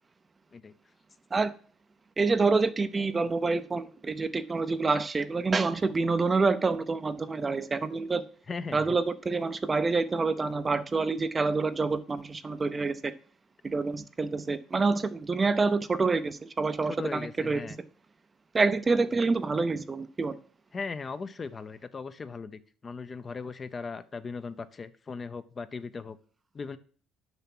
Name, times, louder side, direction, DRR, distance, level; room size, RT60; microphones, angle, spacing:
voice 1, 2.2-8.2 8.7-13.1 13.6-17.7 18.5-20.4, right 4 dB, 25° right, 0.6 m, -27 dB
voice 2, 8.5-8.9 16.8-17.8 20.7-26.2 26.5-26.8, left 4 dB, 30° left, 0.6 m, -38 dB
6.9 x 5.8 x 6.0 m
cardioid pair, 115°, 0 cm